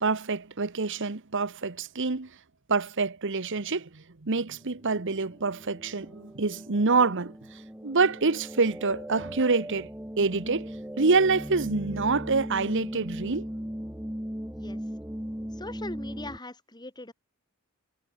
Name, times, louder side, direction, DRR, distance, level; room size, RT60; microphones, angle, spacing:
voice 1, 0.0-2.3 2.7-7.3 7.8-9.9 10.2-10.7 11.0-13.5, right 4 dB, 60° right, 1.2 m, -26 dB
sound 1, 4.5-16.4, equal, 5° right, 1.4 m, -38 dB
voice 2, 15.5-17.1, left 2 dB, 20° left, 5.8 m, -40 dB
head